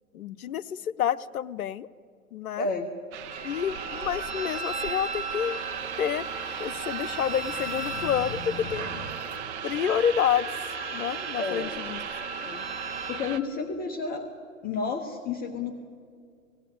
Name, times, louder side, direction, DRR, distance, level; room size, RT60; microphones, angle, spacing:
voice 1, 0.1-1.9 2.3-2.7 3.4-5.6 6.0-6.3 6.6-8.9 9.6-10.5 10.9-12.0, left 9 dB, 85° left, 15 dB, 0.7 m, -28 dB
voice 2, 2.6-2.9 11.4-11.7 12.4-12.7 13.1-14.3 14.6-15.8, left 4 dB, 20° left, 5 dB, 1.1 m, -31 dB
sound 1, 3.1-13.4, right 10 dB, 55° right, 1.1 m, -36 dB
Wind instrument woodwind instrument, 3.3-13.2, equal, 15° right, 2.5 m, -38 dB
sound 2, 5.6-9.4, left 5 dB, 50° left, 1.5 m, -43 dB
18.0 x 16.5 x 9.3 m, 2.3 s
hypercardioid pair, 125°, 42 cm